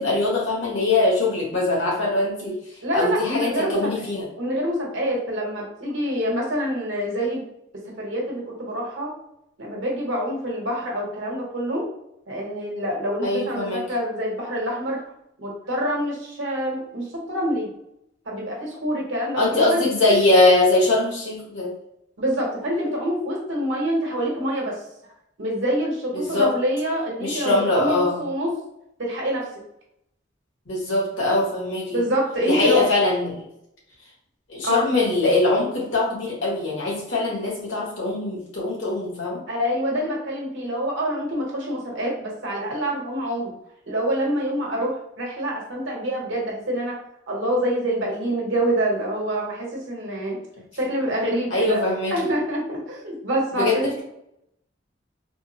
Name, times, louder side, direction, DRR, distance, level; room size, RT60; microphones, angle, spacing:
voice 1, 0.0-2.6 2.9-4.3 13.2-13.8 19.3-21.7 26.1-26.5 27.2-28.2 30.7-32.0 32.5-33.4 34.5-39.4 51.5-52.3 53.6-54.0, left 2 dB, 80° left, -4 dB, 1.3 m, -22 dB
voice 2, 2.8-4.1 4.4-7.4 7.7-9.1 9.6-11.9 12.3-15.0 15.4-17.7 18.2-19.8 22.2-24.7 25.0-25.1 25.4-28.6 29.0-29.5 31.9-32.9 34.6-34.8 39.5-43.5 43.9-47.0 47.3-50.4 50.8-51.8 52.1-54.0, equal, 85° right, -1 dB, 1.1 m, -26 dB
3.5 x 2.0 x 2.8 m, 0.79 s
head